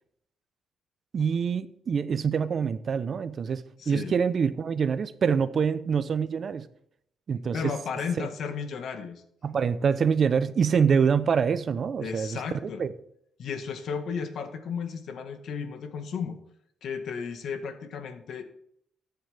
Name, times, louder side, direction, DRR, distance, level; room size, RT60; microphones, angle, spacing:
voice 1, 1.1-6.7 7.3-7.6 8.2-8.3 9.4-12.9, right 6 dB, 50° right, 13 dB, 0.9 m, -25 dB
voice 2, 3.8-4.1 7.5-9.2 12.0-12.8 13.4-16.4 16.8-18.4, left 6 dB, 65° left, 7 dB, 1.7 m, -34 dB
14.5 x 9.3 x 3.6 m, 0.71 s
cardioid pair, 90°, 0 cm